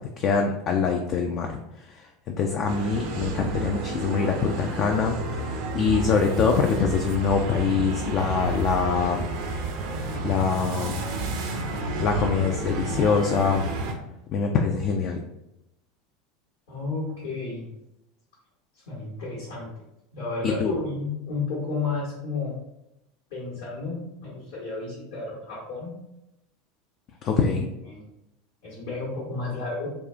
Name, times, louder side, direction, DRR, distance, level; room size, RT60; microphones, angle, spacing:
voice 1, 0.2-1.6 1.9-9.3 10.2-11.0 12.0-13.7 14.3-15.2 20.6-20.7 27.2-27.7, left 5 dB, 40° left, 3 dB, 0.3 m, -24 dB
sound 1, 2.7-13.9, right 2 dB, 55° right, 0.5 m, -30 dB
voice 2, 16.7-17.7 18.7-19.7 20.1-22.5 23.3-26.0 27.3-27.4 27.8-28.0 28.6-29.9, left 3 dB, 65° left, -7 dB, 1.1 m, -32 dB
3.6 x 2.3 x 2.4 m, 0.86 s
figure-of-eight pair, 75°, 0 cm